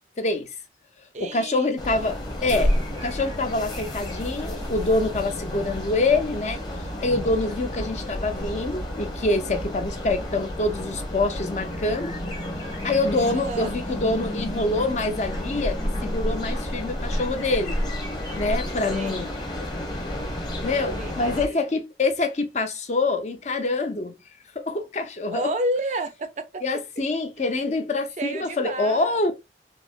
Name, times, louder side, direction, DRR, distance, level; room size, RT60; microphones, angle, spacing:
voice 1, 0.2-0.5 1.2-2.7 3.0-6.6 7.0-12.2 12.8-17.8 18.4-19.3 20.6-24.2 24.5-25.5 26.6-29.3, left 2 dB, 40° left, 0.5 m, -25 dB
voice 2, 1.1-2.1 13.2-13.7 18.9-19.2 20.7-21.6 25.3-26.6 28.2-29.2, right 1 dB, 40° right, 0.4 m, -31 dB
sound 1, 1.8-21.5, left 1 dB, 25° left, 1.0 m, -30 dB
4.5 x 2.0 x 2.3 m
head